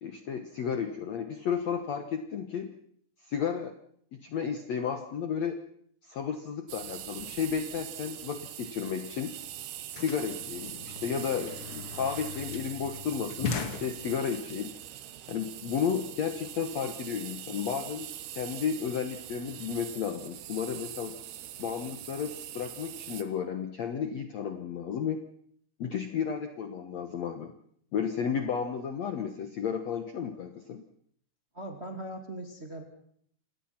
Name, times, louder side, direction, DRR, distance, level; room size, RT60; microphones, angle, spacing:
voice 1, 0.0-2.7 3.2-3.7 4.1-5.6 6.0-9.4 9.9-14.7 15.3-21.2 21.6-25.2 25.8-27.6 27.9-30.8, left 7 dB, 60° left, 8 dB, 1.8 m, -33 dB
sound 1, 6.7-23.2, right 12 dB, 75° right, 3.2 m, -43 dB
sound 2, 9.0-9.1 9.3-14.5, left 5 dB, 45° left, 2.0 m, -39 dB
voice 2, 31.5-32.8, right 1 dB, 20° right, 4 dB, 1.9 m, -40 dB
27.0 x 18.5 x 5.9 m, 0.64 s
omnidirectional pair, 4.6 m